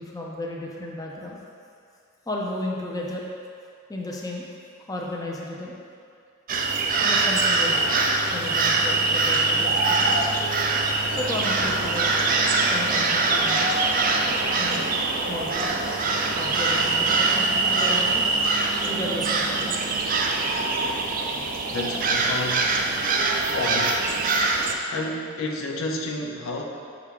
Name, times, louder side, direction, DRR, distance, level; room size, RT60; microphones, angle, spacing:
voice 1, 0.0-1.4 2.3-3.2 3.9-4.5 4.9-5.8 7.0-7.9 8.3-10.2 11.2-13.7 14.6-14.9 15.3-16.0 16.4-18.2 18.8-20.0, left 1 dB, 20° left, -2 dB, 0.6 m, -33 dB
sound 1, 6.5-24.7, right 3 dB, 45° right, 0.5 m, -23 dB
voice 2, 21.6-22.9 23.5-24.0 24.9-26.6, left 2 dB, 85° left, 1 dB, 0.6 m, -31 dB
5.7 x 4.8 x 3.7 m, 2.4 s
head